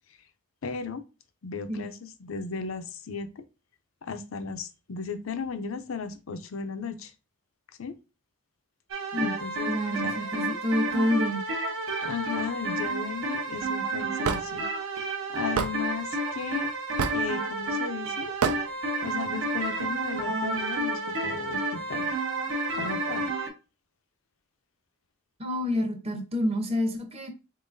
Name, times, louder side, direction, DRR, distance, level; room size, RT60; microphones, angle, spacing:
voice 1, 0.6-1.0 1.4-3.4 4.0-7.1 7.8-7.9 9.2-10.6 12.0-14.6 15.1-16.7 17.1-18.3 19.0-22.2 22.7-23.3, left 5 dB, 65° left, 0.5 m, -36 dB
sound 1, 8.9-23.5, right 2 dB, 65° right, 0.8 m, -30 dB
voice 2, 9.7-11.4 25.4-27.3, left 1 dB, 25° right, 0.8 m, -28 dB
Hammer / Wood, 14.2-14.4 15.6-15.7 17.0-17.3 18.4-18.6, right 6 dB, 85° right, 0.5 m, -26 dB
3.9 x 3.7 x 2.6 m
head